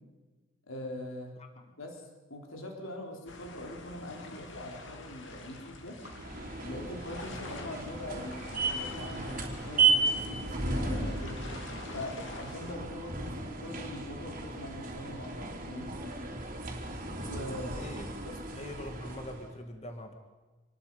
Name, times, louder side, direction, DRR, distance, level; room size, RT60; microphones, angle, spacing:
voice 1, 0.7-1.3 1.8-2.0 2.3-6.0 6.6-11.4 11.9-16.0 17.2-17.9 18.2-18.4, left 1 dB, 75° left, 1 dB, 3.9 m, -42 dB
sound 1, 3.3-12.7, left 2 dB, 60° left, 2.8 m, -47 dB
sound 2, 6.0-19.5, right 4 dB, 40° right, 3.1 m, -34 dB
voice 2, 17.7-18.1 18.5-20.1, left 1 dB, 30° left, 4 dB, 1.9 m, -43 dB
27.0 x 20.5 x 5.5 m, 1.3 s
head